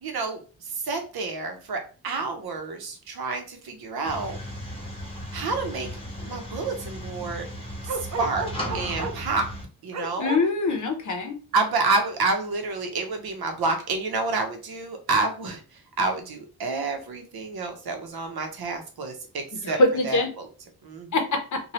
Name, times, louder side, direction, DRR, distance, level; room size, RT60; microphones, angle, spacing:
voice 1, 0.0-4.4 5.3-6.0 6.2-7.5 7.8-8.5 8.7-9.5 9.8-10.3 11.5-19.8 20.0-20.2 20.8-21.2, right 3 dB, 75° right, 5 dB, 0.8 m, -29 dB
sound 1, 4.0-9.6, equal, 15° left, 0.8 m, -36 dB
Bark, 7.9-9.3 9.9-10.4, right 3 dB, 50° right, 0.5 m, -31 dB
voice 2, 10.2-11.4 19.6-20.3 21.1-21.6, left 2 dB, 50° left, 5 dB, 0.7 m, -23 dB
3.0 x 2.3 x 2.8 m, 0.36 s
wide cardioid pair, 155°, 37 cm